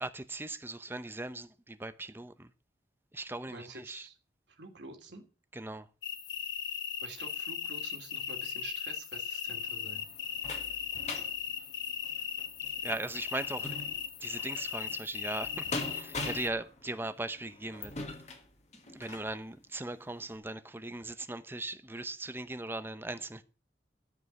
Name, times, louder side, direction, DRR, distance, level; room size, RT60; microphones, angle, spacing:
voice 1, 0.0-2.5 3.1-4.0 5.6-5.8 12.8-13.7 14.2-17.9 18.9-23.4, right 2 dB, 10° right, 0.7 m, -39 dB
voice 2, 3.5-4.2 4.6-5.2 7.0-10.1, right 3 dB, 65° right, 2.9 m, -48 dB
sound 1, 6.0-16.5, left 8 dB, 70° left, 1.5 m, -38 dB
sound 2, 9.5-19.3 19.9-20.0 20.4-20.5, left 2 dB, 35° left, 1.9 m, -43 dB
14.0 x 5.4 x 9.0 m
head